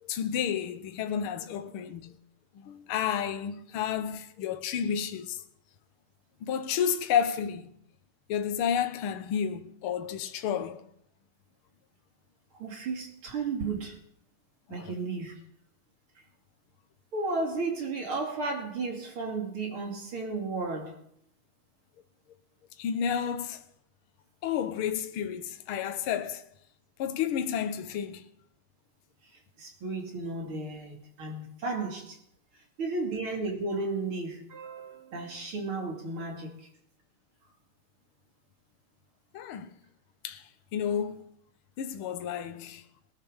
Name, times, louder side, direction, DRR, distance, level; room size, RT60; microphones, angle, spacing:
voice 1, 0.0-2.2 2.5-5.4 6.4-7.7 8.3-10.8 14.7-14.9 22.8-23.6 24.4-26.4 27.0-28.2 39.3-39.7 40.2-40.4 40.7-41.2 41.8-42.8, left 8 dB, 60° left, 1.7 m, -31 dB
voice 2, 12.6-14.0 14.7-15.3 17.1-21.0 29.6-32.2 32.8-36.7, right 3 dB, 45° right, 3.4 m, -34 dB
18.5 x 12.0 x 6.5 m
omnidirectional pair, 3.3 m